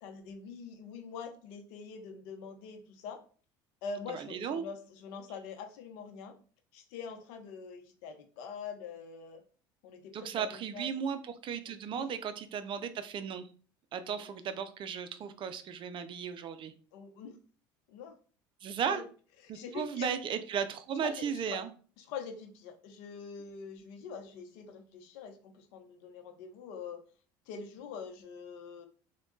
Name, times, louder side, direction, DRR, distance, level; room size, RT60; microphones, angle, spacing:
voice 1, 0.0-3.2 3.8-6.3 6.7-9.4 9.8-10.9 11.7-12.1 12.6-12.8 14.0-14.4 16.9-17.4 17.9-18.1 18.9-19.0 19.4-20.1 21.0-21.6 22.0-27.0 27.5-28.9, left 5 dB, 75° left, 6 dB, 0.7 m, -44 dB
voice 2, 4.1-4.6 10.1-13.5 13.9-16.7 18.6-19.0 19.5-21.7, right 7 dB, 45° right, 11 dB, 0.5 m, -35 dB
3.5 x 2.2 x 3.8 m, 0.41 s
supercardioid pair, 80°, 11 cm